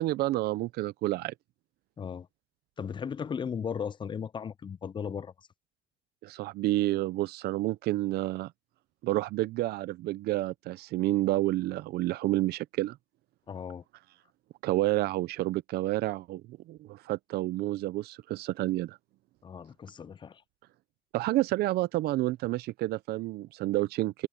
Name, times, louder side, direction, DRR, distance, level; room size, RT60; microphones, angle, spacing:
voice 1, 0.0-1.3 6.2-8.5 9.0-13.0 14.6-19.0 21.1-24.3, right 17 dB, 70° right, 0.5 m, -29 dB
voice 2, 2.0-2.3 2.8-5.3 13.5-13.8 19.4-20.4, left 7 dB, 30° left, 0.5 m, -36 dB
cardioid pair, 110°, 17 cm